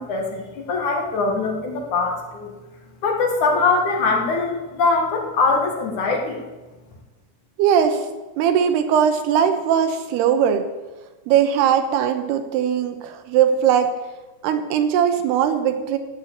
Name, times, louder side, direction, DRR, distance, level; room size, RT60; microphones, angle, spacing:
voice 1, 0.0-2.5 3.0-6.4, left 3 dB, 55° left, 2 dB, 2.9 m, -22 dB
voice 2, 7.6-8.1 8.4-10.7 11.3-14.0 14.4-16.0, right 8 dB, 90° right, 8 dB, 3.1 m, -19 dB
15.5 x 6.1 x 8.6 m, 1.2 s
omnidirectional pair, 4.6 m